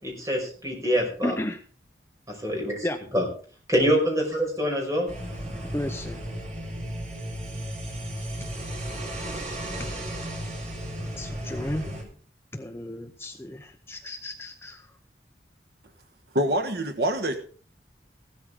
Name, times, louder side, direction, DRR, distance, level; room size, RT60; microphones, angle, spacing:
voice 1, 0.0-1.3 2.4-2.9 3.1-3.3 3.7-5.1, equal, 20° right, 0 dB, 5.5 m, -25 dB
voice 2, 1.2-1.6 2.8-3.0 5.6-6.2 9.8-9.9 11.0-12.0 12.5-14.9, left 1 dB, 15° left, 6 dB, 0.7 m, -33 dB
sound 1, 5.1-12.0, equal, 40° right, 4.6 m, -34 dB
voice 3, 16.3-17.4, right 1 dB, 65° right, 7 dB, 1.3 m, -25 dB
16.0 x 13.0 x 3.7 m, 0.43 s
head